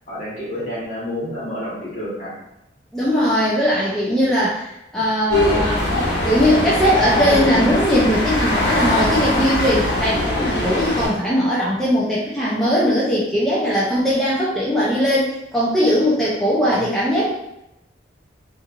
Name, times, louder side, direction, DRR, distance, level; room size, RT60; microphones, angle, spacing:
voice 1, 0.1-2.3 16.6-17.0, left 1 dB, 45° left, -8 dB, 1.2 m, -29 dB
voice 2, 2.9-17.3, equal, ahead, -9 dB, 0.4 m, -19 dB
sound 1, 5.3-11.1, left 1 dB, 80° left, 1.0 m, -21 dB
3.0 x 2.5 x 2.4 m, 0.85 s
head